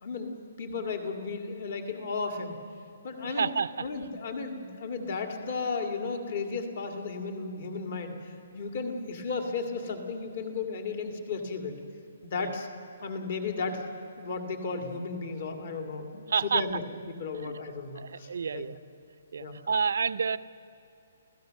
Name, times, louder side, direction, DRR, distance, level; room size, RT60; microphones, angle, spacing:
voice 1, 0.0-2.6 3.0-3.5 3.8-11.8 12.2-12.7 13.0-13.8 14.2-16.8 17.2-18.7 19.4-19.6, left 4 dB, 45° left, 4 dB, 2.2 m, -34 dB
voice 2, 3.3-3.9 12.4-12.5 16.3-16.7 17.4-17.6 18.0-18.8 19.3-20.4, right 6 dB, 65° right, 16 dB, 0.6 m, -29 dB
29.5 x 16.0 x 6.5 m, 2.7 s
hypercardioid pair, 175°, 0 cm